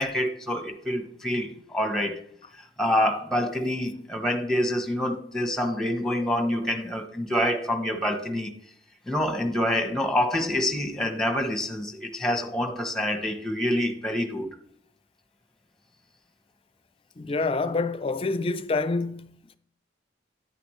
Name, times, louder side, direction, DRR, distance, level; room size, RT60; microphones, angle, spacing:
voice 1, 0.0-2.2 2.5-8.5 9.1-14.5, left 1 dB, 5° left, 1.0 m, -27 dB
voice 2, 6.2-6.6 17.2-19.6, left 3 dB, 30° left, 0.4 m, -28 dB
9.9 x 9.5 x 3.2 m
head